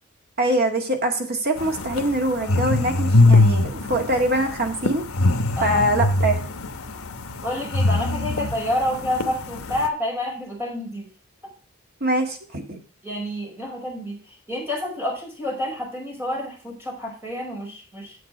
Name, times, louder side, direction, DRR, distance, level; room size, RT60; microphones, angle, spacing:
voice 1, 0.4-5.0 5.6-6.4 12.0-12.8, right 1 dB, 45° right, 3 dB, 1.9 m, -23 dB
sound 1, 1.6-9.9, left 2 dB, 75° left, 1.0 m, -22 dB
voice 2, 7.4-11.1 13.0-14.2 14.5-18.2, left 1 dB, 10° right, -3 dB, 5.1 m, -28 dB
8.4 x 7.7 x 5.0 m, 0.37 s
head